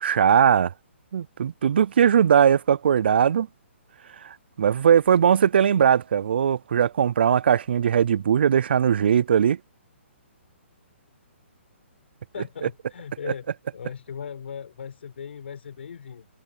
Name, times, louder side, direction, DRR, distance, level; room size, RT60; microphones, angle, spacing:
voice 1, 0.0-0.7 1.1-3.5 4.2-9.6 13.2-13.3, right 8 dB, 55° right, 0.4 m, -20 dB
voice 2, 12.3-13.5 13.7-16.3, left 7 dB, 60° left, 6.4 m, -38 dB
hypercardioid pair, 175°, 7 cm